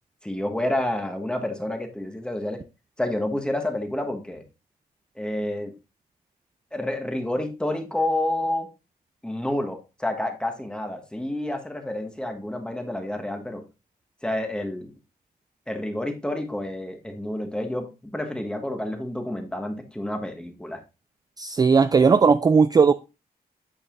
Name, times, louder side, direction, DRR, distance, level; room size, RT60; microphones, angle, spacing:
voice 1, 0.2-2.6 3.0-4.4 5.2-5.7 6.7-8.7 9.2-13.6 14.2-14.9 15.7-20.8, left 1 dB, 5° left, 1.3 m, -29 dB
voice 2, 21.4-22.9, right 5 dB, 25° right, 0.3 m, -17 dB
8.9 x 6.5 x 2.6 m
cardioid pair, 100°, 16 cm